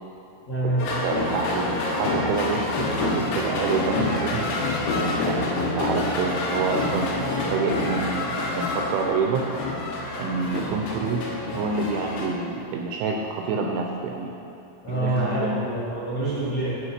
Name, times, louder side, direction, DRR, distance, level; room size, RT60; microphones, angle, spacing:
voice 1, 0.5-0.9 14.8-16.8, right 2 dB, 60° left, -12 dB, 1.6 m, -26 dB
sound 1, 0.8-12.3, left 2 dB, 75° left, 3.5 m, -27 dB
voice 2, 1.0-4.5 5.3-5.4 5.8-9.5 10.2-11.3 11.5-14.3 14.9-15.6, right 4 dB, 85° right, 1 dB, 2.7 m, -27 dB
9.8 x 5.2 x 5.7 m, 2.9 s
omnidirectional pair, 5.8 m